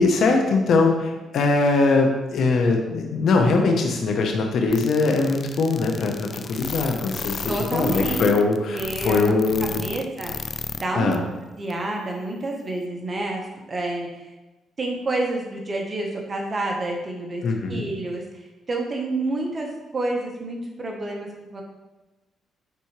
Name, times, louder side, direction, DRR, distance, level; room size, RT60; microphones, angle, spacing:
voice 1, 0.0-9.8 10.9-11.2 17.4-17.8, left 3 dB, 65° left, 2 dB, 0.9 m, -21 dB
sound 1, 4.7-10.8 11.1-11.2 11.7-11.8, left 5 dB, 45° left, 0.4 m, -32 dB
voice 2, 7.5-8.3 8.7-9.3 9.6-10.3 10.8-11.1 11.6-14.3 14.8-17.4 17.7-19.7 19.9-21.6, right 2 dB, 35° right, 0 dB, 1.2 m, -29 dB
9.4 x 4.2 x 3.2 m, 1.1 s
cardioid pair, 90°, 0 cm